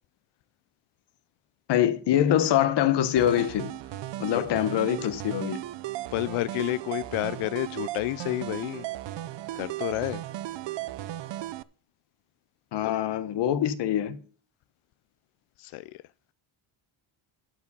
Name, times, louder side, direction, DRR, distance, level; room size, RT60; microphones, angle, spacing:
voice 1, 1.7-3.7 4.2-5.6 12.7-14.2, left 11 dB, 60° left, 1.1 m, -24 dB
Game World, 3.2-11.6, right 15 dB, 60° right, 0.6 m, -36 dB
voice 2, 6.1-8.9 9.5-10.2 12.8-12.9 15.6-16.0, left 18 dB, 90° left, 0.6 m, -30 dB
12.5 x 5.0 x 7.0 m
cardioid pair, 180°, 48 cm